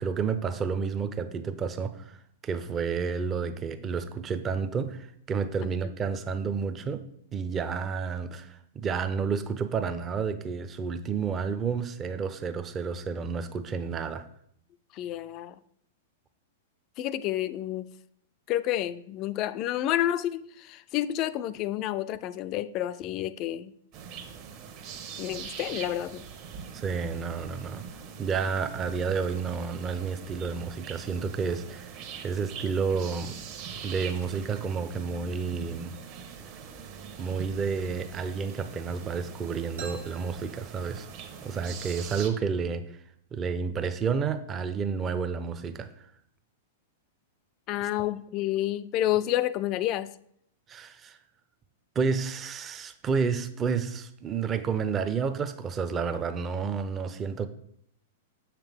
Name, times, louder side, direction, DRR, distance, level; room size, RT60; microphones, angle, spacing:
voice 1, 0.0-7.0 7.3-14.3 26.7-27.9 28.2-32.0 32.2-33.4 33.8-35.9 37.2-41.1 41.4-42.8 43.3-45.9 50.7-51.2 52.0-57.5, right 5 dB, 25° right, 0.6 m, -30 dB
voice 2, 14.9-15.6 17.0-17.9 18.5-23.7 25.2-26.2 47.7-50.1, left 13 dB, 40° left, 0.3 m, -29 dB
sound 1, 23.9-42.3, right 6 dB, 45° right, 1.1 m, -43 dB
sound 2, 39.8-41.5, right 4 dB, 80° right, 1.5 m, -46 dB
7.0 x 5.8 x 3.5 m
hypercardioid pair, 110°, 0 cm